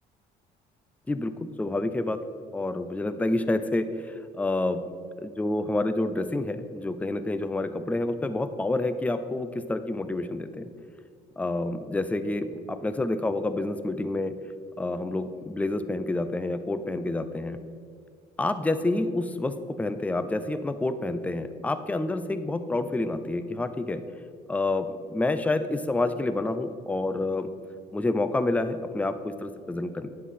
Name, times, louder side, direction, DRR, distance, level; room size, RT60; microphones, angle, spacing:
voice 1, 1.1-2.2 2.5-4.8 5.2-10.7 11.4-14.4 14.8-17.6 18.4-24.0 24.5-27.5 27.9-30.1, left 2 dB, 10° left, 11 dB, 0.5 m, -28 dB
10.0 x 9.2 x 4.2 m, 2.2 s
cardioid pair, 110°, 17 cm